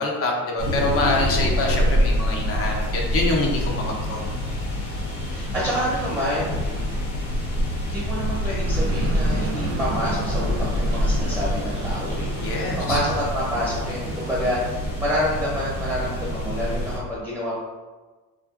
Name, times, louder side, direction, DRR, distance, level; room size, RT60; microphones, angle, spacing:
voice 1, 0.0-4.2 12.4-13.0, left 2 dB, 35° left, -1 dB, 0.6 m, -25 dB
sound 1, 0.6-17.0, equal, 90° left, 0.8 m, -26 dB
voice 2, 5.2-6.8 7.9-17.5, equal, 5° right, -9 dB, 0.9 m, -28 dB
sound 2, 8.6-14.5, right 2 dB, 35° right, 0.4 m, -33 dB
2.4 x 2.4 x 2.4 m, 1.3 s
supercardioid pair, 90°, 40 cm